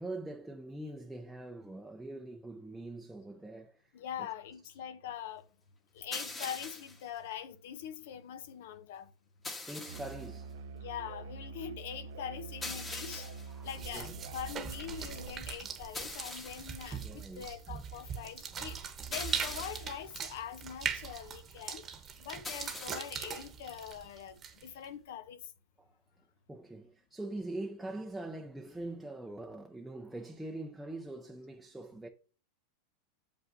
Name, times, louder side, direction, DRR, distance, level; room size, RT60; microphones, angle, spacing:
voice 1, 0.0-3.9 4.2-4.3 9.6-10.6 13.5-13.7 13.9-14.2 16.2-16.4 17.0-17.5 21.2-21.3 25.8-25.9 26.5-32.1, right 2 dB, 5° right, 0.5 m, -43 dB
voice 2, 3.9-5.5 5.9-9.1 10.7-13.3 13.6-25.5, left 9 dB, 75° left, 0.7 m, -43 dB
sound 1, 6.1-7.0 9.4-10.3 12.6-13.5 15.9-16.8 19.1-20.0 22.4-23.3, left 2 dB, 20° left, 1.2 m, -42 dB
Musical instrument, 9.9-15.5, right 4 dB, 75° right, 0.4 m, -46 dB
sound 2, 13.6-24.8, right 7 dB, 30° right, 1.0 m, -41 dB
7.1 x 5.5 x 2.6 m
supercardioid pair, 125°, 0 cm